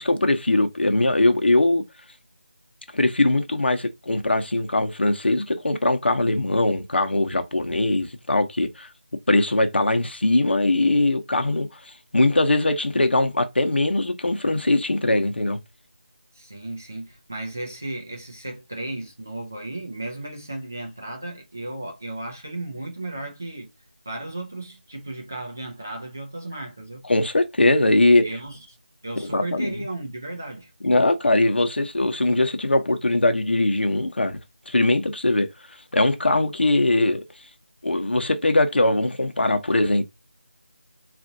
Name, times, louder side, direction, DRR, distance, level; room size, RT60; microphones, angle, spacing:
voice 1, 0.0-1.8 2.9-8.9 9.3-15.6 27.1-28.3 29.2-29.7 30.8-34.4 34.7-35.5 35.9-37.2 37.8-40.1, left 2 dB, 70° left, 0.9 m, -21 dB
voice 2, 16.3-23.7 24.1-27.0 28.2-28.8 29.0-30.7, right 2 dB, 15° right, 0.4 m, -35 dB
4.1 x 2.5 x 2.6 m
figure-of-eight pair, 180°, 6 cm